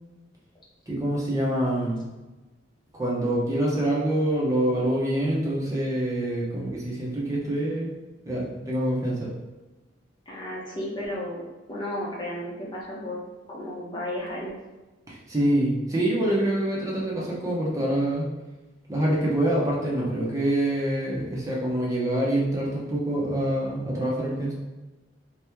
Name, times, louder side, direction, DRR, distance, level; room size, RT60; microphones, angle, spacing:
voice 1, 0.9-2.0 2.9-7.9 8.2-9.3 15.1-18.3 18.9-24.5, right 1 dB, 20° right, -5 dB, 0.9 m, -26 dB
voice 2, 10.3-11.4 11.7-13.2 13.5-14.6, left 1 dB, 25° left, -5 dB, 1.0 m, -33 dB
4.2 x 3.0 x 3.5 m, 1.1 s
head